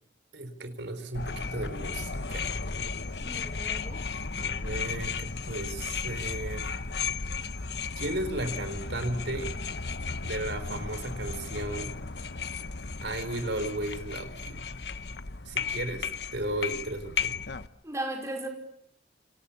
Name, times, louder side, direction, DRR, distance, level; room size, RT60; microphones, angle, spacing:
voice 1, 0.3-2.5 4.4-6.7 8.0-9.5 10.2-11.9 13.0-14.6 15.5-17.4, right 1 dB, 80° right, 10 dB, 4.2 m, -35 dB
sound 1, 1.1-17.7, left 5 dB, 70° left, 1.1 m, -35 dB
voice 2, 3.2-4.0 17.8-18.5, right 1 dB, 15° right, 3 dB, 5.0 m, -36 dB
29.5 x 27.0 x 7.2 m, 0.68 s
head